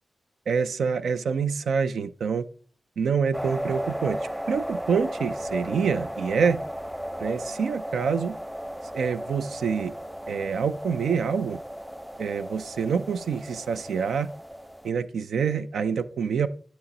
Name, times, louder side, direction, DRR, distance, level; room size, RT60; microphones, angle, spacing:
voice 1, 0.5-2.5 3.0-4.2 4.5-6.6 7.2-8.4 8.9-9.9 10.3-11.6 12.2-14.3 14.8-16.5, right 6 dB, 85° right, 12 dB, 0.4 m, -26 dB
sound 1, 3.3-14.9, equal, 5° right, 0.3 m, -35 dB
8.6 x 5.7 x 4.0 m, 0.43 s
cardioid pair, 65°, 0 cm